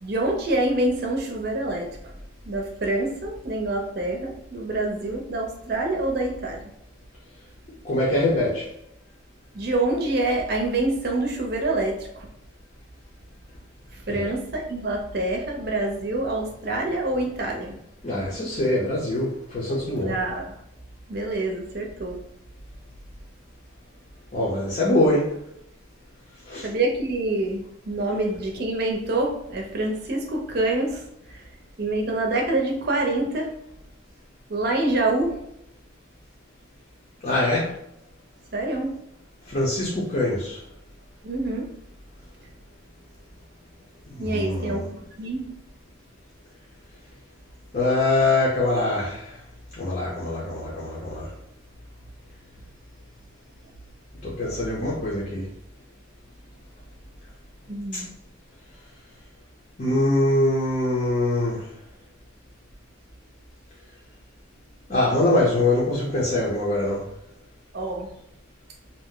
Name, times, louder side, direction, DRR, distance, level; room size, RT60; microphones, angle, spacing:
voice 1, 0.0-2.0 2.4-6.6 9.5-12.3 13.9-17.7 20.0-20.5 21.1-22.2 26.6-31.5 31.8-33.5 34.5-35.4 38.5-39.0 41.2-41.7 44.2-45.5 57.7-58.1 67.7-68.1, right 2 dB, 50° right, 1 dB, 0.6 m, -26 dB
voice 2, 7.8-8.7 14.1-14.3 18.0-20.2 24.3-25.4 26.5-26.7 37.2-37.7 39.5-40.6 44.1-44.8 47.7-49.3 49.7-51.3 54.2-55.5 57.9-58.0 59.8-61.7 64.9-67.0, left 2 dB, 40° left, -6 dB, 0.6 m, -23 dB
2.7 x 2.1 x 3.7 m, 0.79 s
head